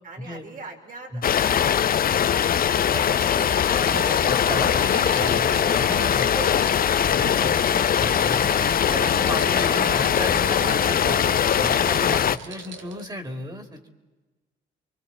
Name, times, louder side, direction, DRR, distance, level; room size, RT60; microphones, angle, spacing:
voice 1, 0.0-1.9 2.2-5.0 5.9-6.9 7.4-7.8 8.6-8.9 11.7-12.0, right 3 dB, 45° right, 3 dB, 3.9 m, -41 dB
sound 1, 1.2-12.4, left 9 dB, 45° left, 0.6 m, -21 dB
sound 2, 2.7-13.0, right 6 dB, 70° right, 1.7 m, -39 dB
sound 3, 3.4-4.3 4.7-6.2 6.6-8.1 8.4-9.9 10.3-10.6, left 4 dB, 25° left, 1.2 m, -38 dB
voice 2, 3.8-6.3 7.1-7.5 8.0-11.2 11.6-13.9, equal, 20° right, 5 dB, 3.1 m, -34 dB
29.0 x 24.0 x 4.3 m, 1.2 s
cardioid pair, 90°, 20 cm